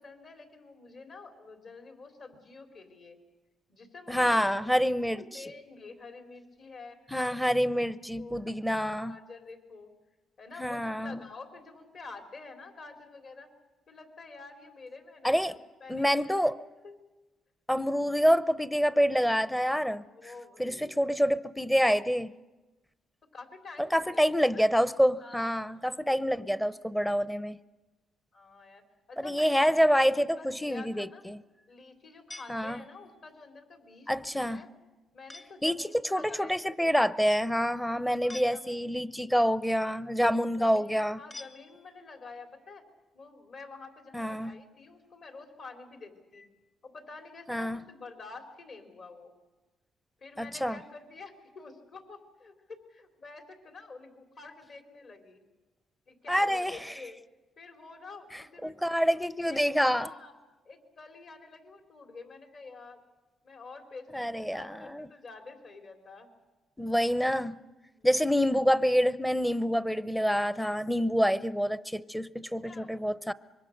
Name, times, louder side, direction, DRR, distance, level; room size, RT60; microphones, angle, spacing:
voice 1, 0.0-3.2 3.7-4.7 5.1-7.0 8.2-8.4 8.8-9.9 10.4-13.5 13.9-17.0 20.1-21.0 23.2-24.7 25.2-26.5 28.3-28.8 29.1-31.2 31.7-34.7 35.1-36.6 38.1-38.9 40.6-42.8 43.1-46.5 46.8-49.3 50.2-55.4 56.1-57.2 57.6-58.7 59.1-59.2 59.5-60.3 60.6-63.0 63.4-66.3 67.9-68.1 72.6-73.0, left 3 dB, 55° left, 5 dB, 3.7 m, -48 dB
voice 2, 4.1-5.4 7.1-9.2 10.6-11.2 15.2-15.5 15.9-16.6 17.7-20.0 20.6-22.3 23.9-27.6 29.2-31.4 32.5-32.8 34.1-34.6 35.6-35.8 36.1-41.2 44.1-44.6 47.5-47.8 50.4-50.7 56.3-56.8 58.6-60.1 64.1-65.1 66.8-67.6 68.0-73.3, equal, 5° left, 16 dB, 0.7 m, -27 dB
sound 1, 32.3-33.2 35.3-35.8 38.3-39.1 41.3-42.2, left 2 dB, 30° left, 1.3 m, -49 dB
25.0 x 22.5 x 6.5 m, 1.2 s
cardioid pair, 90°, 0 cm